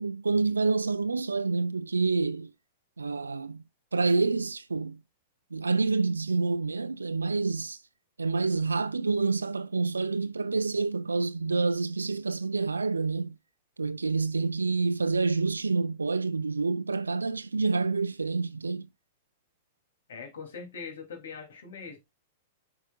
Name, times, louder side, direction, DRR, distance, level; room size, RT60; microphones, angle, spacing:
voice 1, 0.0-2.5 3.0-3.6 3.9-5.0 5.5-7.8 8.2-13.3 13.8-18.9, right 4 dB, 90° right, 0.4 m, -28 dB
voice 2, 20.1-22.0, left 5 dB, 70° left, 2.6 m, -41 dB
8.4 x 4.9 x 2.3 m
hypercardioid pair, 105°, 0 cm